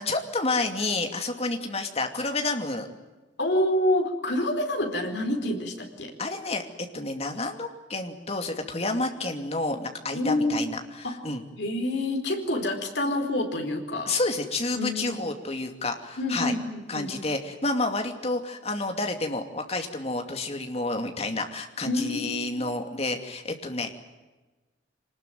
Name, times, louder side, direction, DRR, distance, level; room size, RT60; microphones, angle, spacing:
voice 1, 0.0-2.9 6.2-6.6 6.9-11.4 14.1-16.5 16.9-23.9, left 2 dB, 35° left, 5 dB, 2.5 m, -29 dB
voice 2, 3.4-6.1 10.1-10.6 11.0-11.2 11.6-14.1 14.7-15.2 16.2-17.1 21.8-22.5, left 1 dB, 65° left, 3 dB, 4.4 m, -27 dB
25.0 x 20.0 x 9.3 m, 1.2 s
head